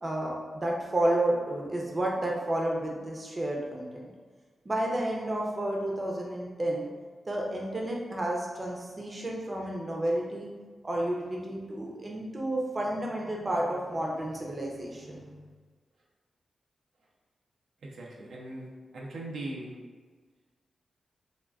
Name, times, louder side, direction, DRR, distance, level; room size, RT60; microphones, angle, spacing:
voice 1, 0.0-4.0 4.6-6.9 7.3-10.5 10.8-15.4, right 1 dB, 35° right, -2 dB, 0.5 m, -31 dB
voice 2, 17.8-19.7, right 1 dB, 85° right, -3 dB, 0.4 m, -40 dB
3.4 x 2.3 x 2.3 m, 1.4 s
cardioid pair, 80°, 0 cm